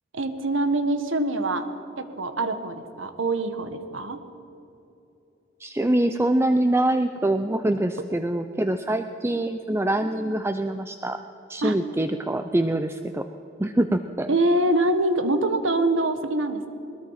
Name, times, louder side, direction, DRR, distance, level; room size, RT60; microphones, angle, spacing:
voice 1, 0.1-1.7 2.0-4.2 11.6-11.7 14.3-16.7, right 2 dB, 75° right, 9 dB, 1.6 m, -24 dB
voice 2, 5.6-11.2 11.5-13.2 13.6-14.3, right 1 dB, 15° right, 8 dB, 0.5 m, -24 dB
21.5 x 21.0 x 5.8 m, 2.8 s
head